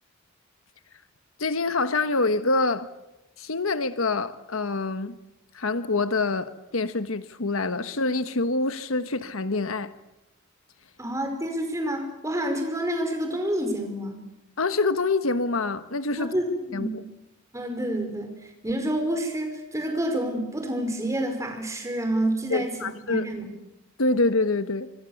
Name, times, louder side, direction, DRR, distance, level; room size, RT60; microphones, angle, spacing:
voice 1, 1.4-2.9 3.4-5.2 5.5-9.9 14.6-16.3 16.7-17.0 22.5-23.3 24.0-24.9, left 3 dB, 90° left, 1.3 m, -26 dB
voice 2, 11.0-14.2 16.2-16.9 17.5-18.3 18.6-22.7 23.0-23.5, right 1 dB, 15° right, 5.0 m, -28 dB
26.0 x 25.0 x 7.2 m
head